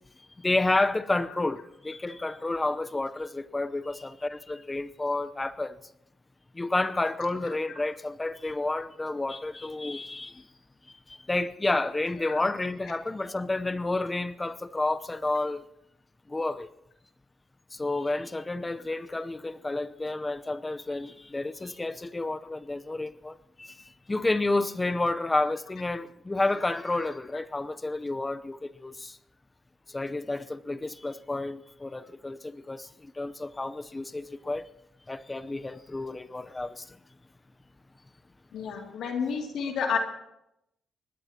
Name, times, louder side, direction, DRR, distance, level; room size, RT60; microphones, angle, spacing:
voice 1, 0.4-5.7 6.6-10.3 11.3-15.6 16.3-16.7 17.8-23.7 24.1-29.1 29.9-32.4 32.7-32.8 33.2-34.6 35.1-36.8, left 2 dB, 20° left, 0.7 m, -30 dB
voice 2, 38.5-40.0, left 6 dB, 75° left, 2.5 m, -30 dB
24.0 x 19.5 x 2.9 m
cardioid pair, 90°, 0 cm